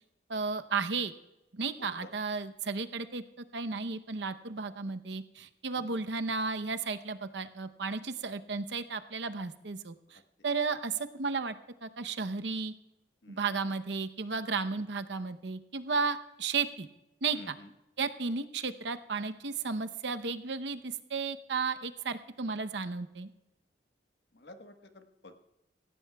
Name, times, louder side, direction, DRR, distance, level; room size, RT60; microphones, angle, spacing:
voice 1, 0.3-1.1 1.5-11.6 11.8-12.7 13.3-16.9 17.2-17.6 18.0-23.3, right 4 dB, 85° right, 9 dB, 0.8 m, -34 dB
voice 2, 1.8-2.1 5.8-6.0 13.2-13.4 17.3-17.7 24.3-25.4, left 1 dB, 70° left, 6 dB, 1.3 m, -50 dB
18.5 x 15.5 x 2.3 m, 0.93 s
head